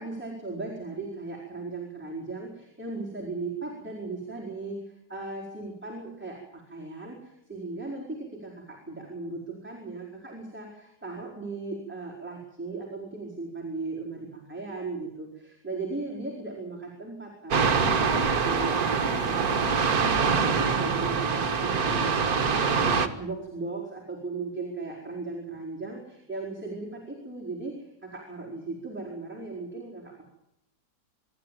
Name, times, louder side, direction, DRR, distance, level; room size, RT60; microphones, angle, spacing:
voice 1, 0.0-30.2, right 3 dB, 5° right, -3 dB, 4.6 m, -37 dB
sound 1, 17.5-23.1, right 5 dB, 55° right, 2.0 m, -24 dB
26.5 x 13.0 x 9.2 m, 0.83 s
omnidirectional pair, 1.9 m